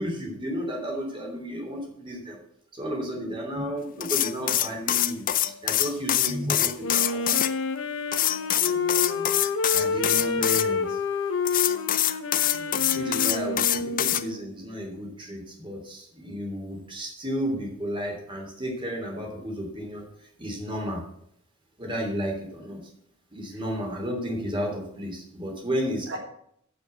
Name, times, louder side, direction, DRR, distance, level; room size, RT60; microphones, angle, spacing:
voice 1, 0.0-2.4 2.7-5.3 5.6-7.4 9.7-11.0 12.9-20.0 20.4-21.0 21.8-22.8 23.3-26.2, equal, 25° right, 1 dB, 3.1 m, -32 dB
sound 1, 4.0-7.5 8.1-10.6 11.4-14.2, left 12 dB, 40° left, 0.5 m, -24 dB
Wind instrument woodwind instrument, 6.8-14.5, left 4 dB, 65° left, 0.9 m, -29 dB
voice 2, 8.5-9.3 10.2-10.3 12.5-12.9 26.1-26.2, equal, 65° right, 2 dB, 1.4 m, -37 dB
7.7 x 7.0 x 7.9 m, 0.69 s
head